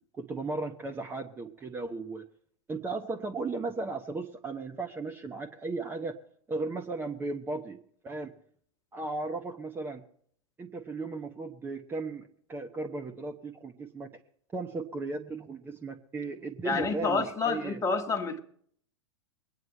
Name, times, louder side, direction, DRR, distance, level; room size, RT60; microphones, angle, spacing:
voice 1, 0.1-2.2 2.7-6.2 6.5-8.3 8.9-10.0 10.6-14.2 14.5-17.8, right 3 dB, 15° right, 0.9 m, -36 dB
voice 2, 16.6-18.4, left 4 dB, 20° left, 1.3 m, -29 dB
23.0 x 9.3 x 4.4 m
figure-of-eight pair, 95°, 17 cm